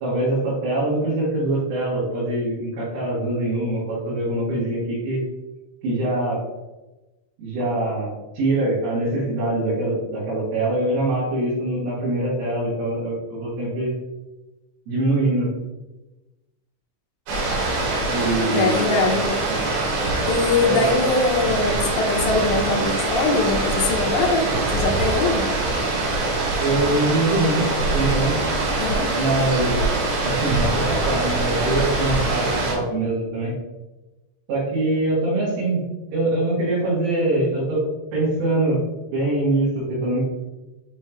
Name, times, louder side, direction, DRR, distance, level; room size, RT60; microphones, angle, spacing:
voice 1, 0.0-5.2 5.8-6.4 7.4-13.9 14.9-15.5 18.1-18.9 19.5-19.6 20.7-20.9 21.4-21.7 26.6-28.3 29.2-29.8 30.2-33.5 34.5-35.8 36.1-37.8 38.1-38.8 39.1-40.2, right 2 dB, 90° right, -11 dB, 4.6 m, -23 dB
sound 1, 17.3-32.7, right 2 dB, 70° right, 4.0 m, -23 dB
voice 2, 18.5-19.3 20.3-24.5 24.7-25.4 28.8-29.1, left 3 dB, 75° left, 1 dB, 2.8 m, -22 dB
8.9 x 3.0 x 3.8 m, 1.1 s
omnidirectional pair, 5.4 m